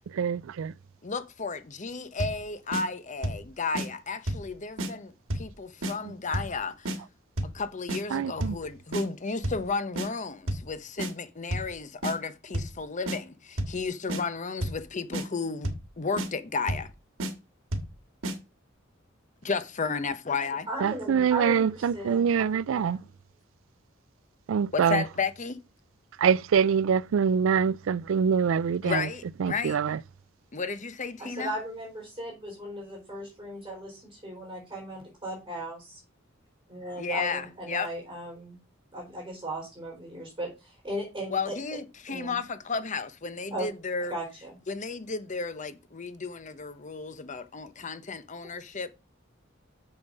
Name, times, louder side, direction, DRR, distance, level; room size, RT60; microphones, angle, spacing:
voice 1, 0.1-0.7 6.0-6.1 8.1-8.6 20.8-23.0 24.5-25.0 26.2-29.1 29.4-30.0, right 7 dB, 70° right, 0.3 m, -25 dB
voice 2, 1.0-7.0 7.4-15.7 16.0-16.9 19.4-20.7 24.7-25.6 28.8-29.8 30.5-31.5 37.0-37.9 41.3-44.1 44.7-48.9, left 4 dB, 40° left, 0.9 m, -33 dB
sound 1, 2.2-2.4 2.7-2.8 3.2-3.5 3.8-3.9 4.3-4.5 4.8-4.9 5.3-5.5 5.8-5.9 6.3-6.6 6.9-7.0 7.4-7.6 7.9-8.0 8.4-8.6 8.9-9.0 9.4-9.7 10.0-10.1 10.5-10.7 11.0-11.1 11.5-11.7 12.0-12.2 12.5-12.8 13.1-13.2 13.6-13.8 14.1-14.2 14.6-14.8 15.1-15.3 15.6-15.9 16.2-16.3 16.7-16.9 17.2-17.3 17.7-17.9 18.2-18.4, right 1 dB, 90° right, 1.7 m, -30 dB
voice 3, 20.7-23.1 31.2-36.0 36.7-38.6 38.9-41.6 42.1-42.4 43.5-43.7 44.1-44.6, right 1 dB, 20° right, 3.9 m, -37 dB
7.1 x 6.7 x 5.4 m
head